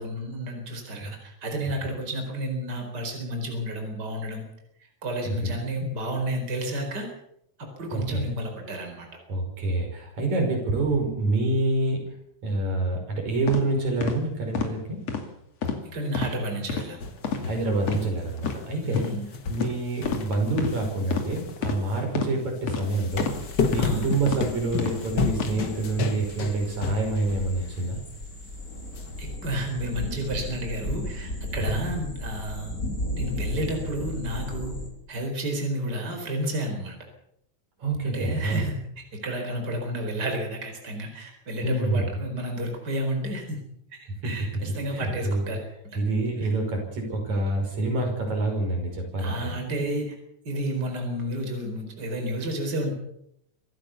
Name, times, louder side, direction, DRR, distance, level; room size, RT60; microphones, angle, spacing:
voice 1, 0.0-4.4 5.0-7.1 7.6-9.1 15.9-17.0 18.8-19.3 23.7-24.1 29.2-32.7 33.2-34.7 35.1-37.0 38.0-38.8 39.2-43.6 43.9-45.6 45.9-46.0 46.4-46.5 49.2-50.2 50.4-52.9, right 1 dB, 35° right, 3 dB, 5.0 m, -31 dB
voice 2, 7.9-8.3 9.3-12.0 12.4-15.0 17.4-19.1 19.5-23.3 23.7-28.0 31.6-31.8 37.8-38.7 41.6-42.1 44.2-44.3 44.9-45.4 45.9-49.5, right 2 dB, 70° right, 3 dB, 6.8 m, -27 dB
sound 1, 13.5-13.6 14.0-14.2 14.5-14.7 15.1-15.2 15.6-15.8 16.1-16.3 16.7-16.9 17.2-17.4 17.8-18.0 18.4-18.6 18.9-19.1 19.6-19.7 20.0-20.2 20.6-20.7 21.1-21.3 21.6-21.8 22.1-22.3 22.7-22.8 23.2-23.4 23.7-23.9 24.3-24.4 24.8-25.0 25.3-25.5, left 6 dB, 60° left, 3.5 m, -29 dB
sound 2, 17.0-18.7 18.9-22.0 22.7-27.4 27.8-27.9 28.9-29.0, left 4 dB, 45° left, 1.8 m, -31 dB
sound 3, 23.1-34.9, left 1 dB, 25° left, 5.5 m, -35 dB
26.0 x 15.0 x 7.1 m, 0.76 s
omnidirectional pair, 3.3 m